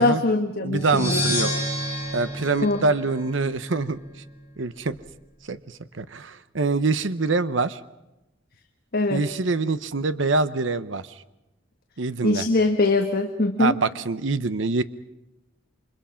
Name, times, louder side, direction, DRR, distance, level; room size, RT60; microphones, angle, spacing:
voice 1, 0.0-1.2 2.6-2.8 8.9-9.2 12.2-13.7, left 2 dB, 50° left, 4 dB, 1.4 m, -22 dB
voice 2, 0.6-1.5 2.1-4.0 4.6-5.0 5.4-7.8 9.1-11.2 12.0-12.5 13.6-14.8, right 3 dB, 75° right, 13 dB, 0.8 m, -25 dB
sound 1, 0.7-3.6, equal, 15° right, 7.2 m, -28 dB
29.0 x 24.5 x 5.8 m, 0.94 s
head